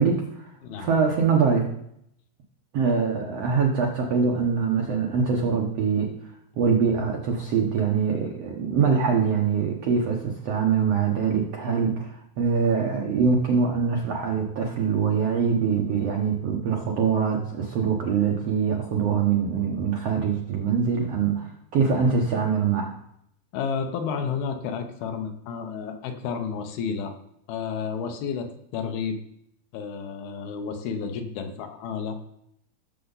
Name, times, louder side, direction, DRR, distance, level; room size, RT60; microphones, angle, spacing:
voice 1, 0.0-0.5 0.8-1.7 2.7-6.1 6.5-23.0, right 6 dB, 80° right, 0 dB, 1.4 m, -23 dB
voice 2, 23.5-27.1 27.5-29.2 29.7-32.2, left 6 dB, 75° left, 6 dB, 2.8 m, -31 dB
16.0 x 6.9 x 4.0 m, 0.76 s
omnidirectional pair, 4.5 m